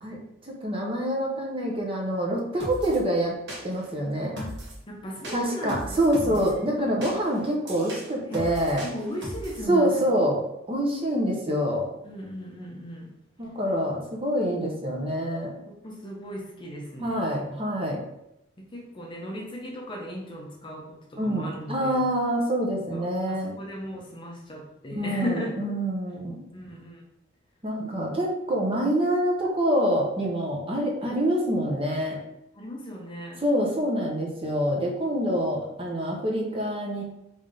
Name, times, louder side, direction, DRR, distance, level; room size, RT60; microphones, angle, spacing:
voice 1, 0.0-3.4 3.6-4.3 5.3-8.9 9.7-10.4 10.7-11.9 13.4-15.5 17.0-18.0 21.2-23.6 25.0-26.4 27.6-32.2 33.4-37.0, equal, 30° right, -1 dB, 0.7 m, -26 dB
sound 1, 2.6-3.0 3.5-3.9 4.4-4.8 5.2-6.5 7.0-9.6, equal, 55° right, 1.0 m, -38 dB
voice 2, 4.9-6.8 8.3-8.4 8.8-10.4 12.0-13.1 13.8-14.0 15.7-17.2 18.7-22.0 22.7-25.6 26.5-27.0 32.5-33.4, equal, 25° left, -1 dB, 0.6 m, -37 dB
3.4 x 2.7 x 3.7 m, 0.83 s
head